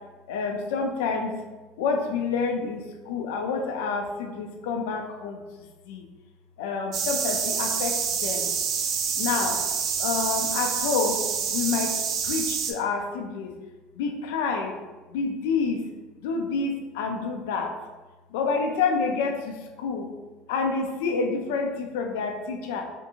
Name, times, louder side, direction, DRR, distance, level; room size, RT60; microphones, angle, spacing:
voice 1, 0.3-1.4 1.8-5.4 5.9-6.0 6.6-8.5 9.2-9.6 10.0-11.2 11.5-13.5 14.0-14.8 15.1-15.8 16.2-17.7 18.3-20.1 20.5-22.9, left 4 dB, 80° left, 4 dB, 0.3 m, -28 dB
sound 1, 6.9-12.7, right 6 dB, 55° right, 0.3 m, -27 dB
2.5 x 2.4 x 2.8 m, 1.2 s
supercardioid pair, 90°, 0 cm